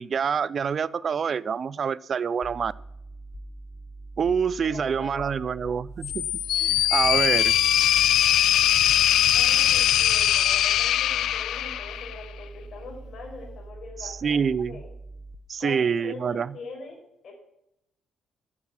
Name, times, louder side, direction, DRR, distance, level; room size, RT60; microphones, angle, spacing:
voice 1, 0.0-2.7 4.2-6.3 6.5-7.5 14.0-14.8 15.5-16.5, right 6 dB, 50° right, 19 dB, 0.4 m, -26 dB
sound 1, 2.4-15.4, right 2 dB, 30° left, 1.0 m, -43 dB
voice 2, 4.6-5.7 9.3-14.9 15.6-17.0 17.2-17.3, left 4 dB, 55° left, -1 dB, 5.2 m, -42 dB
sound 2, 6.0-12.2, left 11 dB, 80° left, 0.4 m, -21 dB
9.6 x 7.4 x 8.8 m, 0.81 s
cardioid pair, 90°, 0 cm